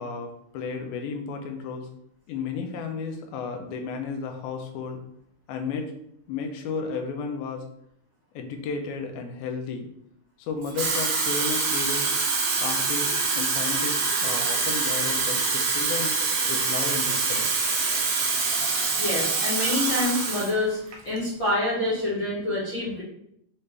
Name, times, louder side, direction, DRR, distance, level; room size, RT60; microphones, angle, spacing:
voice 1, 0.0-1.9 2.3-5.0 5.5-5.9 6.3-7.6 8.4-9.9 10.4-12.1 12.6-16.2 16.5-17.5, left 5 dB, 80° left, 4 dB, 1.8 m, -33 dB
Water tap faucet / Fill (with liquid), 10.6-20.5 20.9-21.2, right 4 dB, 80° right, 1.4 m, -25 dB
voice 2, 18.7-23.0, left 1 dB, 60° left, -9 dB, 1.3 m, -27 dB
5.5 x 2.5 x 3.3 m, 0.74 s
omnidirectional pair, 3.9 m